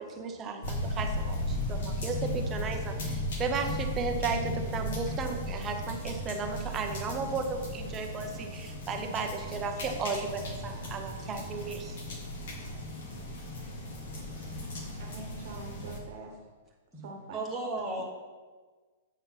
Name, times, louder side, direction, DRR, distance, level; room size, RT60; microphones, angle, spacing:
voice 1, 0.1-12.0, right 4 dB, 15° right, 4 dB, 0.6 m, -35 dB
sound 1, 0.6-16.0, left 1 dB, 55° left, 1.7 m, -36 dB
voice 2, 15.0-16.3 17.0-17.8, right 3 dB, 45° right, 2 dB, 1.1 m, -45 dB
voice 3, 16.9-18.0, right 2 dB, 5° left, -4 dB, 1.2 m, -35 dB
8.0 x 4.2 x 5.7 m, 1.4 s
hypercardioid pair, 175°, 0 cm